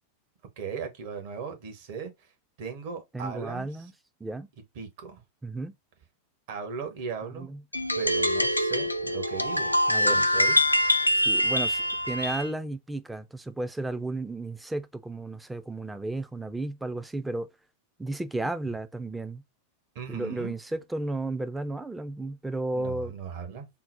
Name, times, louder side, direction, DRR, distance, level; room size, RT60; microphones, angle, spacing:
voice 1, 0.6-2.3 2.6-3.9 4.7-5.2 6.5-7.5 8.0-9.7 10.0-10.6 19.9-20.6 22.7-23.7, right 6 dB, 50° right, 1.0 m, -37 dB
voice 2, 3.1-3.9 4.2-4.5 5.4-5.7 7.3-7.6 9.9-10.2 11.3-17.5 18.0-19.4 20.1-23.1, right 2 dB, 5° right, 0.4 m, -33 dB
sound 1, 7.7-12.5, left 1 dB, 85° left, 0.4 m, -24 dB
3.8 x 2.0 x 4.1 m
figure-of-eight pair, 90°, 0 cm